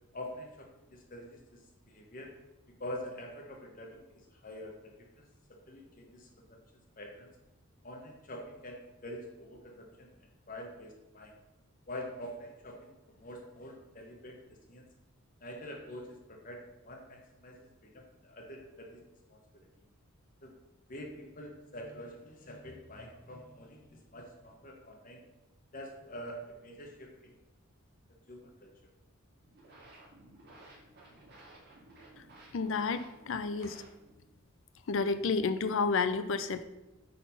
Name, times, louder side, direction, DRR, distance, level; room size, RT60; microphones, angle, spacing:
voice 1, 0.1-1.4 1.9-2.3 2.8-4.0 4.3-5.2 5.7-6.6 7.0-7.3 7.8-10.1 10.5-11.3 11.9-14.4 14.7-14.8 15.4-19.0 19.3-19.7 20.4-20.5 20.9-25.2 25.7-27.3 28.3-28.7, left 1 dB, 40° left, 2 dB, 1.0 m, -46 dB
sound 1, 29.3-34.3, right 1 dB, 45° right, 2.5 m, -56 dB
voice 2, 32.5-33.8 34.9-36.6, left 4 dB, 60° left, 11 dB, 0.5 m, -30 dB
8.5 x 4.2 x 5.4 m, 1.0 s
head